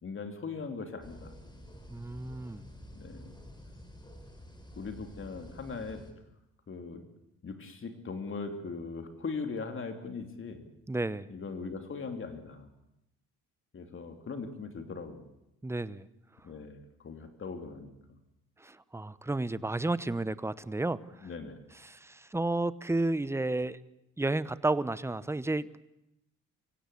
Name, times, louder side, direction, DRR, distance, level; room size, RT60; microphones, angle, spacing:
voice 1, 0.0-1.3 2.9-3.3 4.8-6.0 6.7-7.0 7.4-10.6 11.3-12.7 13.7-15.3 16.4-18.2 21.2-21.6, left 4 dB, 40° left, 6 dB, 3.0 m, -40 dB
sound 1, 1.0-6.1, equal, 15° left, 4.1 m, -50 dB
voice 2, 1.9-2.7 10.9-11.3 15.6-16.1 18.6-21.0 21.8-23.8 24.2-25.8, right 2 dB, 10° right, 16 dB, 0.8 m, -32 dB
24.0 x 16.5 x 8.3 m, 0.85 s
cardioid pair, 90°, 30 cm